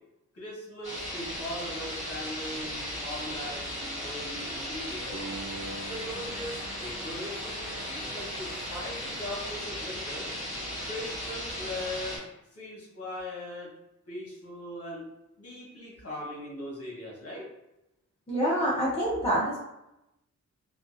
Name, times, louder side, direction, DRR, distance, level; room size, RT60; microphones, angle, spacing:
voice 1, 0.3-5.2 5.8-10.3 10.8-12.2 12.5-13.7 14.1-15.1 15.4-17.5, left 1 dB, 50° left, -5 dB, 1.1 m, -40 dB
sound 1, 0.8-12.2, equal, 25° right, 1.4 m, -36 dB
sound 2, 5.1-8.3, right 2 dB, 80° right, 0.9 m, -44 dB
voice 2, 18.3-19.6, right 1 dB, 20° left, -7 dB, 0.6 m, -26 dB
2.6 x 2.3 x 2.5 m, 0.88 s
wide cardioid pair, 145°, 30 cm